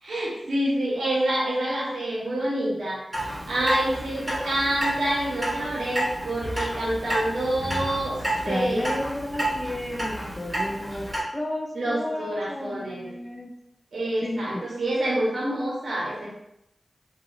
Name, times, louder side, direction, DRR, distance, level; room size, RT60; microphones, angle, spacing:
voice 1, 0.0-8.9 11.7-13.1 13.9-16.4, right 1 dB, 80° right, -6 dB, 1.0 m, -27 dB
Clock, 3.1-11.2, right 1 dB, 20° right, 1.1 m, -31 dB
voice 2, 8.5-13.5 14.2-14.7, left 1 dB, 30° left, 1 dB, 0.4 m, -32 dB
2.7 x 2.6 x 2.6 m, 0.83 s
cardioid pair, 40°, 0 cm